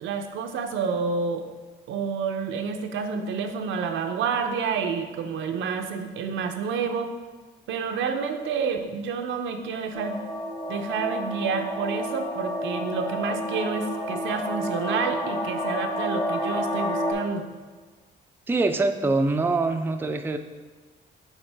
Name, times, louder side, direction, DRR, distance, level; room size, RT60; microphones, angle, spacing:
voice 1, 0.0-1.5 1.9-7.1 7.7-10.2 10.7-17.5, right 5 dB, 80° right, 6 dB, 0.6 m, -29 dB
sound 1, 9.9-17.1, equal, 25° left, 1.0 m, -30 dB
voice 2, 18.5-20.4, right 3 dB, 10° right, 6 dB, 0.4 m, -24 dB
7.2 x 4.2 x 3.4 m, 1.4 s
cardioid pair, 90°, 20 cm